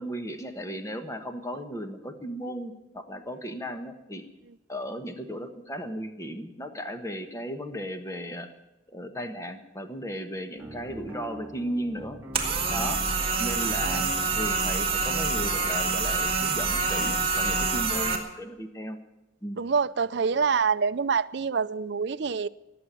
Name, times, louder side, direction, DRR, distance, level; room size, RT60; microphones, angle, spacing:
voice 1, 0.0-4.2 4.7-8.5 8.9-12.2 12.7-13.0 13.4-14.1 14.3-19.0 19.4-19.6, equal, 15° left, 1.3 m, -35 dB
sound 1, 10.6-14.4, right 1 dB, 10° right, 2.4 m, -42 dB
sound 2, 12.3-18.2, right 4 dB, 30° right, 2.1 m, -26 dB
voice 2, 19.6-22.5, right 5 dB, 60° right, 0.5 m, -26 dB
18.5 x 7.9 x 9.1 m
head